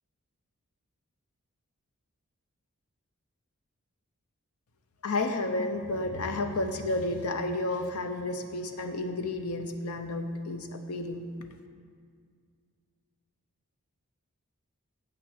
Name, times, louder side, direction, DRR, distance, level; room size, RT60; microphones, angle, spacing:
voice 1, 5.0-11.3, left 2 dB, 85° left, 7 dB, 0.7 m, -31 dB
7.8 x 6.1 x 6.3 m, 2.1 s
head